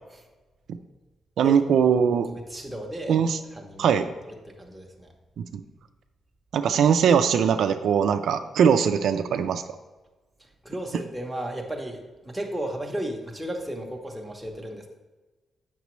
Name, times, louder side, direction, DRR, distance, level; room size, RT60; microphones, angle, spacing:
voice 1, 1.4-2.3 3.1-3.4 3.8-4.1 5.4-5.6 6.5-9.6, right 7 dB, 70° right, 8 dB, 0.3 m, -21 dB
voice 2, 2.3-3.2 3.5-4.0 4.4-5.1 10.6-14.9, right 1 dB, 5° right, 0 dB, 0.8 m, -34 dB
8.1 x 5.9 x 3.1 m, 1.2 s
wide cardioid pair, 160°, 0 cm